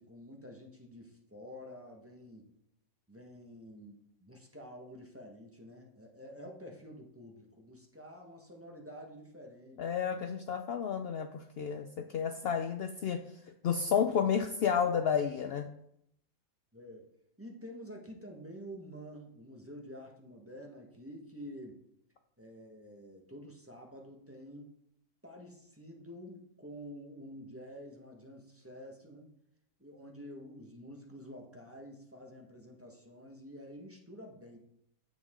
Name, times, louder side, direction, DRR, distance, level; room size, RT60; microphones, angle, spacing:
voice 1, 0.0-2.5 3.1-9.8 16.7-17.1 17.4-21.8 22.4-24.7 25.2-29.3 29.8-34.6, equal, 10° right, 0 dB, 1.1 m, -49 dB
voice 2, 9.8-13.2 13.6-15.7, left 7 dB, 80° left, 6 dB, 0.5 m, -31 dB
9.5 x 7.3 x 3.7 m, 0.75 s
omnidirectional pair, 1.6 m